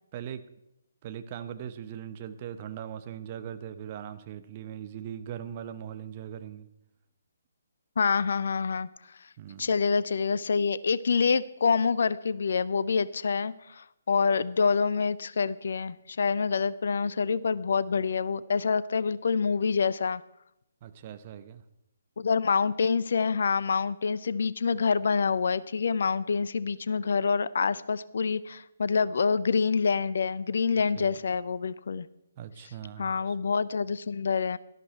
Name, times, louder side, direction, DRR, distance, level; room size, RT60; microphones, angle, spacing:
voice 1, 1.0-6.7 9.4-9.7 20.8-21.6 31.0-31.1 32.4-33.3, right 9 dB, 35° right, 9 dB, 1.2 m, -40 dB
voice 2, 8.0-8.9 9.6-20.2 22.2-32.1 33.0-34.6, left 5 dB, 55° left, 17 dB, 0.7 m, -26 dB
17.5 x 13.0 x 4.5 m, 0.83 s
figure-of-eight pair, 135°, 0 cm